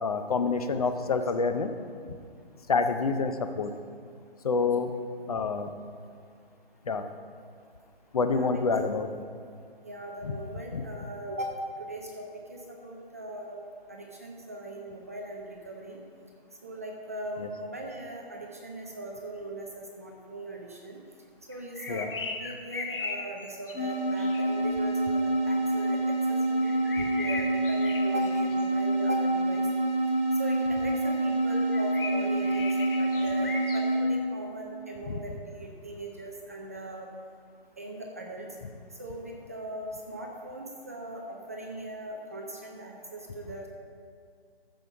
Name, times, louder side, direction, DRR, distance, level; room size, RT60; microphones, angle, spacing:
voice 1, 0.0-1.7 2.7-3.7 4.4-4.9 5.3-5.7 6.9-7.1 8.1-9.1 10.7-10.8 17.4-17.5 21.9-22.1 35.1-35.2, left 4 dB, 40° left, 8 dB, 0.6 m, -27 dB
voice 2, 8.3-8.6 9.8-13.6 13.9-16.0 16.6-21.0 21.5-29.7 30.4-37.1 37.8-38.5 39.0-43.7, right 1 dB, 15° right, 0 dB, 0.5 m, -39 dB
sound 1, 21.5-24.5 26.6-28.6 31.7-33.8, left 4 dB, 65° left, 1.5 m, -38 dB
sound 2, 23.7-34.1, right 1 dB, 80° left, 2.4 m, -27 dB
13.5 x 5.5 x 5.9 m, 2.2 s
hypercardioid pair, 160°, 30 cm